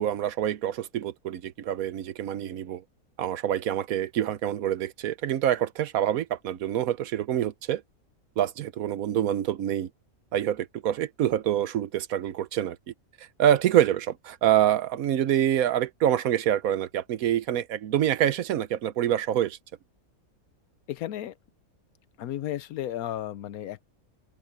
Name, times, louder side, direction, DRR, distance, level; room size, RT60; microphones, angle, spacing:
voice 1, 0.0-2.8 3.2-7.8 8.4-9.9 10.3-19.6, right 11 dB, 80° right, 1.2 m, -26 dB
voice 2, 20.9-21.3 22.2-23.8, left 12 dB, 85° left, 1.2 m, -33 dB
open air
omnidirectional pair, 1.5 m